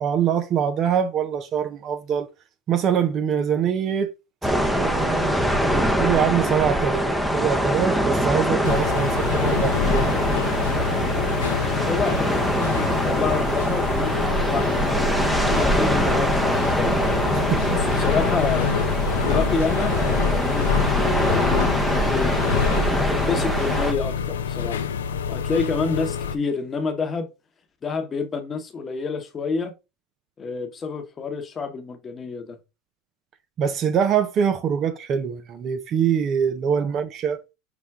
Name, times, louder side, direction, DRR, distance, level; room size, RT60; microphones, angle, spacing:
voice 1, 0.0-2.3 2.7-4.1 4.8-5.4 6.0-10.3 17.3-17.8 33.6-37.4, right 8 dB, 45° right, 0.5 m, -24 dB
sound 1, 4.4-23.9, equal, ahead, 0.6 m, -23 dB
sound 2, 8.6-26.4, left 6 dB, 85° left, 0.4 m, -26 dB
voice 2, 11.9-16.9 17.7-18.7 19.1-19.9 20.3-22.5 23.0-24.8 25.3-27.3 27.8-29.7 30.4-32.6 36.8-36.9, left 4 dB, 30° left, 0.9 m, -28 dB
5.8 x 2.2 x 3.5 m
hypercardioid pair, 95°, 0 cm